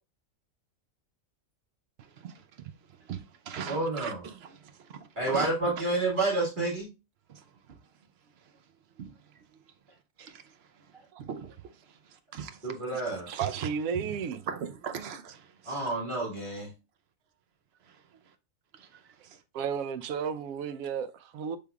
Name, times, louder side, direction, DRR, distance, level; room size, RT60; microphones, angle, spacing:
voice 1, 2.0-2.7 3.0-5.7 7.3-7.8 9.0-9.6 10.2-10.9 11.2-13.0 13.3-14.1 14.5-15.8 17.9-18.0 18.7-19.4, right 8 dB, 60° right, 0.7 m, -41 dB
voice 2, 3.7-4.2 5.2-6.9 12.6-13.3 15.7-16.7, right 2 dB, 35° right, 1.9 m, -29 dB
voice 3, 13.4-14.4 19.5-21.6, right 7 dB, 90° right, 1.0 m, -33 dB
6.5 x 3.5 x 2.3 m
omnidirectional pair, 1.4 m